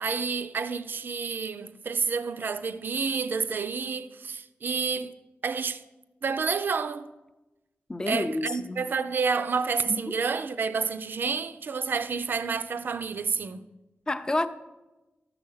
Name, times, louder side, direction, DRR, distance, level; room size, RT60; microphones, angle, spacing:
voice 1, 0.0-5.1 5.4-5.8 6.2-7.1 8.1-13.6, right 5 dB, 55° right, 0.5 m, -29 dB
voice 2, 7.9-8.8 9.9-10.0 14.1-14.5, left 2 dB, 20° left, 0.5 m, -29 dB
13.0 x 7.7 x 5.5 m
wide cardioid pair, 175°, 4 cm